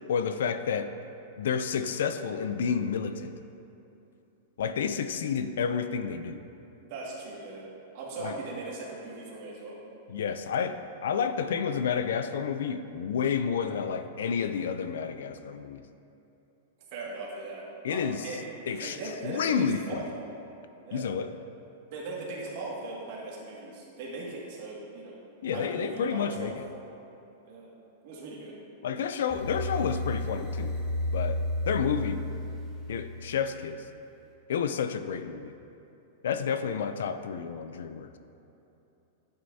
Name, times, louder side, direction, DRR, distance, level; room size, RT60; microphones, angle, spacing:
voice 1, 0.1-0.9 1.4-3.3 4.6-6.4 8.2-8.3 10.1-15.8 17.8-18.3 18.7-20.1 20.9-21.3 25.4-26.6 28.8-30.8 31.1-32.2 32.9-33.8 34.5-35.5 36.2-38.1, left 6 dB, 75° left, 10 dB, 0.4 m, -30 dB
voice 2, 6.8-7.7 7.9-9.8 16.9-18.4 18.7-20.2 20.8-21.1 21.9-25.2 25.5-26.5 27.4-27.7 28.0-28.5, right 3 dB, 40° right, -4 dB, 2.0 m, -39 dB
sound 1, 29.3-33.4, left 1 dB, ahead, 0.9 m, -32 dB
11.0 x 8.8 x 2.7 m, 2.9 s
supercardioid pair, 175°, 0 cm